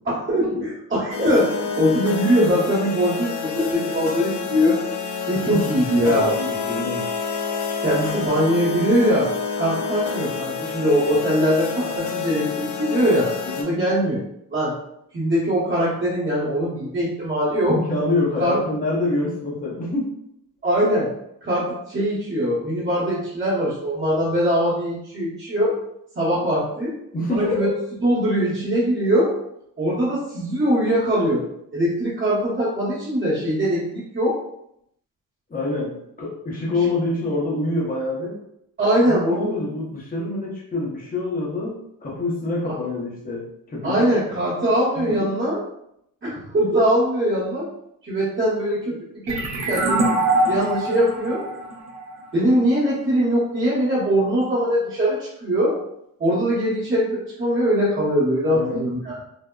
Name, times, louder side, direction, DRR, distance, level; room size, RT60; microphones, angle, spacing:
voice 1, 0.0-1.5 1.8-4.8 5.2-6.3 7.8-9.3 9.5-13.3 13.6-14.2 14.5-14.7 15.1-17.8 18.4-18.6 20.6-21.1 21.4-25.7 26.2-26.9 27.3-27.7 28.0-29.3 29.8-31.4 31.7-34.3 38.8-39.5 42.7-42.8 43.8-45.6 46.2-47.7 48.0-50.1 50.5-51.4 52.3-55.8 56.2-59.2, equal, 35° right, -12 dB, 1.0 m, -21 dB
sound 1, 1.1-13.6, left 5 dB, 60° left, 0.4 m, -28 dB
voice 2, 6.1-7.0 13.5-13.8 17.6-20.1 27.1-27.7 35.5-38.4 39.1-44.0 45.0-45.3 58.5-58.8, left 2 dB, 25° left, -4 dB, 0.7 m, -26 dB
sound 2, 49.3-52.7, right 2 dB, 50° right, 0.5 m, -24 dB
3.4 x 2.0 x 2.2 m, 0.76 s
wide cardioid pair, 160°, 34 cm